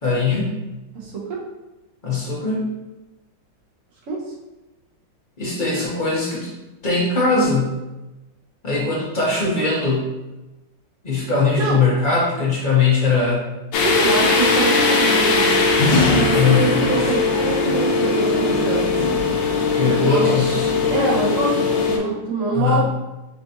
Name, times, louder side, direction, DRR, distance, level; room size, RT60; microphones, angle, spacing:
voice 1, 0.0-0.6 2.0-2.7 5.4-6.5 6.8-7.7 8.6-10.1 11.0-13.5 16.3-16.7 17.0-17.1 19.5-20.7 22.5-22.8, left 4 dB, 40° left, -5 dB, 0.7 m, -20 dB
voice 2, 0.9-1.4 4.1-4.2 11.6-11.8 13.8-15.6 16.1-18.9 19.9-20.3 20.9-22.8, right 3 dB, 55° right, -4 dB, 1.1 m, -24 dB
sound 1, 13.7-22.0, left 3 dB, 85° left, 1.3 m, -19 dB
5.3 x 2.5 x 2.7 m, 1.0 s
omnidirectional pair, 2.0 m